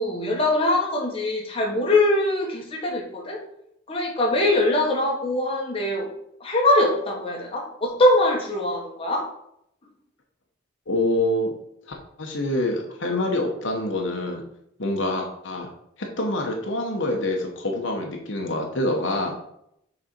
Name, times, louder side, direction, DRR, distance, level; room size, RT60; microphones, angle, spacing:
voice 1, 0.0-3.4 3.9-6.1 6.4-9.3, left 1 dB, 25° left, -1 dB, 1.2 m, -22 dB
voice 2, 10.9-11.5 12.2-14.4 14.8-15.7 16.0-19.4, left 1 dB, 65° left, 1 dB, 1.0 m, -26 dB
6.4 x 4.2 x 4.4 m, 0.75 s
head